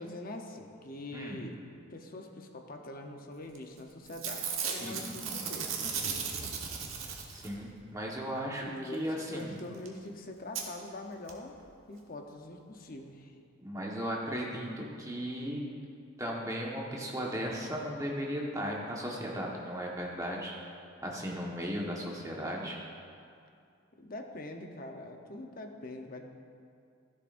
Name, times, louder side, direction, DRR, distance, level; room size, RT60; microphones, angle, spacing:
voice 1, 0.0-1.6 1.9-6.5 8.6-11.6 11.9-13.4 24.0-26.2, left 1 dB, 45° left, 4 dB, 0.8 m, -44 dB
Packing tape duct tape / Tearing, 3.5-3.8 4.1-7.7 9.6-9.7 9.8-9.9 10.5-10.6 11.3-11.4 11.6-11.7, right 6 dB, 90° right, 1.2 m, -36 dB
voice 2, 7.3-9.5 13.6-15.6 16.2-20.6 21.0-22.8, equal, 15° right, -2 dB, 1.3 m, -36 dB
13.5 x 11.0 x 2.6 m, 2.4 s
head